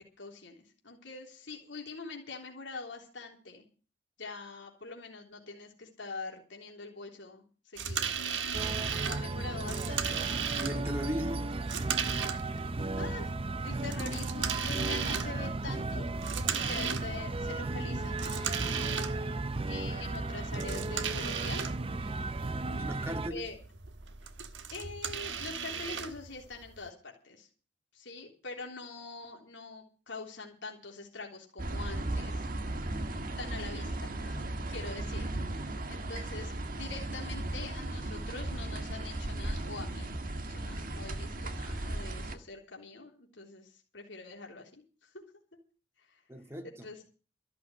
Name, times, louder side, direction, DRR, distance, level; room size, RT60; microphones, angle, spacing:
voice 1, 0.2-3.7 4.2-8.4 8.8-10.2 13.0-13.3 13.6-16.1 16.3-18.8 19.6-21.6 23.3-23.6 24.7-27.5 27.9-33.0 33.4-34.4 34.7-35.3 35.9-45.2 46.0-46.2 46.8-47.0, left 3 dB, 75° left, 3.5 m, -44 dB
sound 1, 7.8-26.9, right 7 dB, 70° right, 1.4 m, -37 dB
sound 2, 8.5-23.3, right 2 dB, 30° right, 0.6 m, -35 dB
voice 2, 10.6-11.5 22.8-23.5 46.3-46.9, equal, 15° right, 2.0 m, -37 dB
sound 3, 31.6-42.4, right 1 dB, 45° right, 1.6 m, -36 dB
14.0 x 6.7 x 9.8 m
head